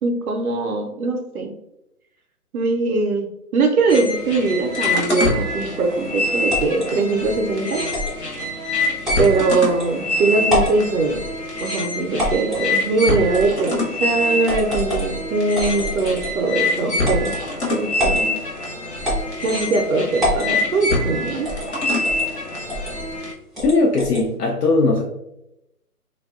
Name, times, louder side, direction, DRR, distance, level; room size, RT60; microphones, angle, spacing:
voice 1, 0.0-1.5 2.5-3.3 3.5-7.8 9.2-11.2 11.6-17.3 17.7-18.4 19.4-21.5, right 3 dB, 70° right, 2 dB, 0.5 m, -21 dB
sound 1, 3.9-23.3, left 2 dB, 45° left, 0.7 m, -25 dB
sound 2, 6.5-6.9 7.9-8.2 9.0-9.3 9.8-9.9 10.4-10.8 12.2-12.6 13.3-13.8 14.4-15.1 15.5-16.4 17.0-17.3 18.0-18.2 19.0-19.6 20.2-20.5 21.4-21.7 22.0-22.3 22.7-22.9 23.5-24.2, equal, ahead, 0.4 m, -25 dB
voice 2, 23.6-25.0, left 3 dB, 90° left, 0 dB, 0.6 m, -18 dB
2.6 x 2.2 x 2.3 m, 0.84 s
hypercardioid pair, 165°, 46 cm